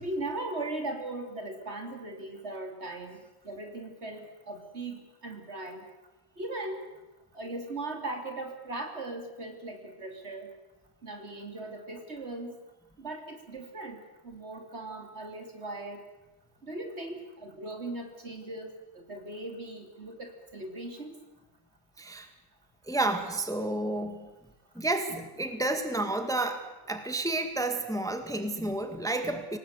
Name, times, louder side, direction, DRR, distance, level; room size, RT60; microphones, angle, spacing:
voice 1, 0.0-5.9 6.4-6.9 7.3-10.5 11.0-12.6 13.0-16.0 16.6-21.2, right 2 dB, 55° right, 4 dB, 3.4 m, -39 dB
voice 2, 22.0-22.3 22.9-24.3 24.8-29.6, right 2 dB, 5° left, 7 dB, 1.8 m, -31 dB
26.0 x 19.0 x 8.1 m, 1.0 s
omnidirectional pair, 1.3 m